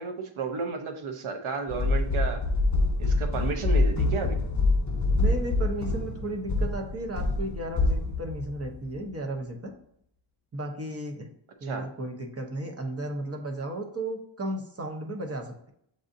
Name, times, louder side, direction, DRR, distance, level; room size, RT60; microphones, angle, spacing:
voice 1, 0.0-2.4 3.0-4.4 11.6-11.8, right 4 dB, 85° right, 4 dB, 0.8 m, -32 dB
sound 1, 1.7-8.9, left 2 dB, 35° left, 0.8 m, -26 dB
voice 2, 5.1-9.7 10.5-11.3 11.6-15.7, right 1 dB, 30° right, 3 dB, 0.8 m, -34 dB
7.6 x 2.6 x 2.6 m, 0.70 s
wide cardioid pair, 140°, 48 cm